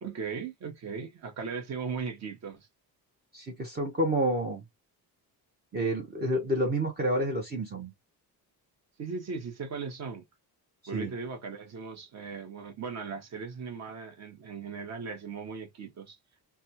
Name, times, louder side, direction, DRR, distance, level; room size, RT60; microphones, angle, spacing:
voice 1, 0.0-2.7 9.0-10.2 10.9-16.2, right 5 dB, 45° right, 1.0 m, -38 dB
voice 2, 3.3-4.6 5.7-7.9 10.9-11.1, right 1 dB, 25° right, 0.7 m, -29 dB
3.3 x 2.3 x 2.8 m
cardioid pair, 165°, 38 cm